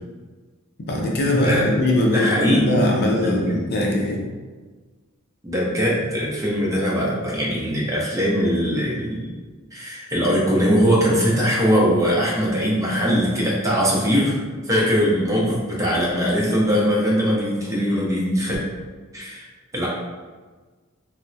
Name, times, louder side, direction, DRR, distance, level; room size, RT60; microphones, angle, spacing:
voice 1, 0.8-2.3 2.6-4.2, left 1 dB, 50° left, -1 dB, 0.5 m, -21 dB
voice 2, 2.1-2.8 3.2-3.4 5.4-9.3 9.7-14.4 14.7-18.6 19.1-19.5 19.7-19.9, equal, 15° right, -5 dB, 0.6 m, -21 dB
3.4 x 2.0 x 2.6 m, 1.4 s
head